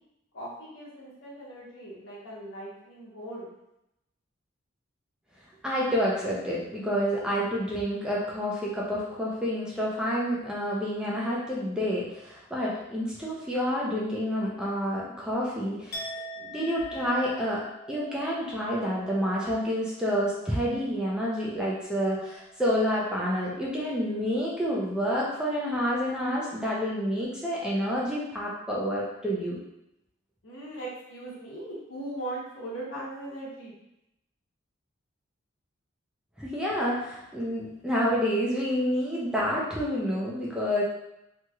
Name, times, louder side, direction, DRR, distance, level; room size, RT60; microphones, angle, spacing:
voice 1, 0.3-3.4 30.4-33.7, right 1 dB, 90° left, -5 dB, 1.0 m, -39 dB
voice 2, 5.6-16.0 16.4-17.6 17.9-29.6 36.4-40.8, equal, 5° right, -6 dB, 0.5 m, -28 dB
Chink clink, 15.9-21.9 22.2-22.6, right 1 dB, 55° left, 0.6 m, -43 dB
2.9 x 2.9 x 2.3 m, 0.86 s
head